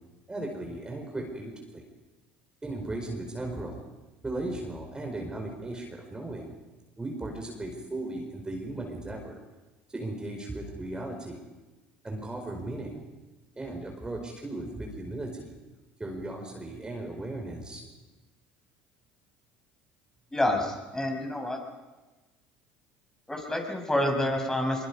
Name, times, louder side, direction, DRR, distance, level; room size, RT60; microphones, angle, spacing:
voice 1, 0.3-1.9 2.6-3.8 4.2-6.5 7.0-9.4 9.9-11.4 12.0-13.1 13.6-15.5 16.0-17.9, right 2 dB, 15° right, 1 dB, 4.9 m, -36 dB
voice 2, 20.3-21.6 23.3-24.9, left 1 dB, 10° left, 2 dB, 6.6 m, -28 dB
23.5 x 23.5 x 5.4 m, 1.2 s
hypercardioid pair, 70°, 5 cm